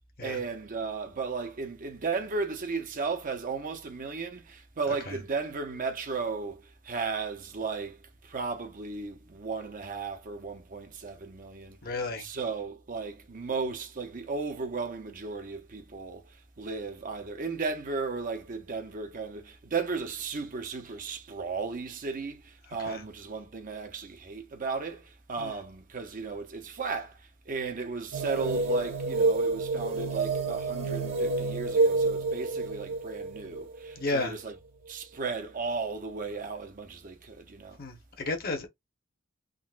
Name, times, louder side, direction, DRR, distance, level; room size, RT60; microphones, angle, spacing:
voice 1, 0.2-34.5 34.9-37.8, right 4 dB, 45° right, 0.6 m, -35 dB
voice 2, 11.8-12.3 22.9-23.0 25.4-25.5 34.0-34.3 37.8-38.7, left 3 dB, 50° left, 0.9 m, -32 dB
sound 1, 28.1-34.5, right 3 dB, 80° right, 1.1 m, -28 dB
3.7 x 2.1 x 2.4 m
head